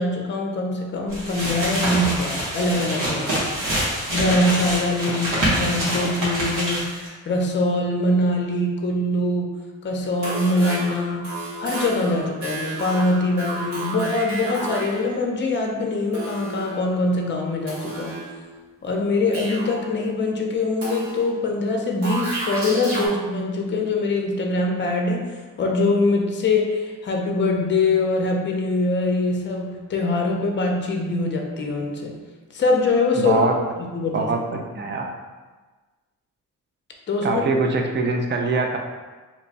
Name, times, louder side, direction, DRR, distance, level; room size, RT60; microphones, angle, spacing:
voice 1, 0.0-3.4 4.1-9.5 9.8-11.3 11.6-18.2 18.8-32.1 32.5-33.4 33.9-34.3 37.1-37.4, left 2 dB, 35° left, 1 dB, 0.6 m, -23 dB
sound 1, 1.1-7.1, right 1 dB, 90° right, 1.2 m, -25 dB
sound 2, 10.0-15.1 16.1-17.0 17.7-18.6 19.3-20.0 20.8-21.4 22.0-23.1, right 2 dB, 65° right, 1.5 m, -32 dB
voice 2, 33.2-33.5 34.1-35.1 37.2-38.8, right 3 dB, 35° right, 2 dB, 0.5 m, -23 dB
3.0 x 2.2 x 3.9 m, 1.3 s
cardioid pair, 125°, 31 cm